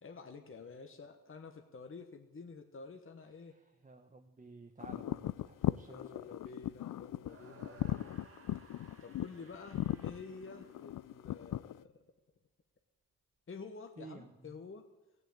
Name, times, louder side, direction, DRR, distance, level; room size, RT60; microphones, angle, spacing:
voice 1, 0.0-3.6 5.9-8.2 9.0-12.0 13.5-14.8, left 4 dB, 35° left, 5 dB, 1.3 m, -50 dB
voice 2, 3.5-6.2 14.0-14.5, right 3 dB, 20° right, 4 dB, 1.0 m, -54 dB
sound 1, 4.8-11.8, left 13 dB, 60° left, 0.5 m, -38 dB
sound 2, 7.2-11.4, right 4 dB, 40° right, 1.8 m, -59 dB
15.5 x 6.8 x 8.6 m, 1.1 s
cardioid pair, 75°, 36 cm